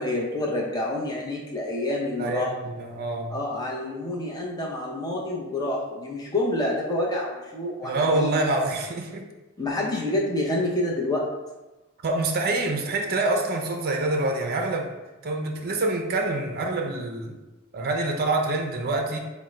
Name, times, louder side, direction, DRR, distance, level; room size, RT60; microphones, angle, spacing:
voice 1, 0.0-2.5 3.3-8.4 9.6-11.2, left 1 dB, 20° left, -4 dB, 0.7 m, -28 dB
voice 2, 2.2-3.3 7.8-9.2 12.0-14.9 15.2-17.4 17.7-19.2, right 2 dB, 45° right, 3 dB, 0.5 m, -26 dB
3.6 x 2.1 x 4.2 m, 1.1 s
head